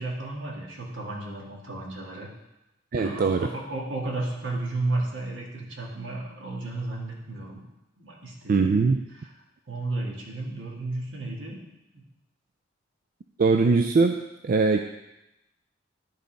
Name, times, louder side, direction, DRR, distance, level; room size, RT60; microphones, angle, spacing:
voice 1, 0.0-2.3 2.9-7.6 8.0-8.9 9.7-11.6 11.9-12.0, right 2 dB, 75° right, -2 dB, 1.9 m, -33 dB
voice 2, 2.9-3.5 8.5-9.0 13.4-14.8, right 4 dB, 45° right, 6 dB, 0.4 m, -21 dB
11.5 x 4.1 x 5.1 m, 0.94 s
head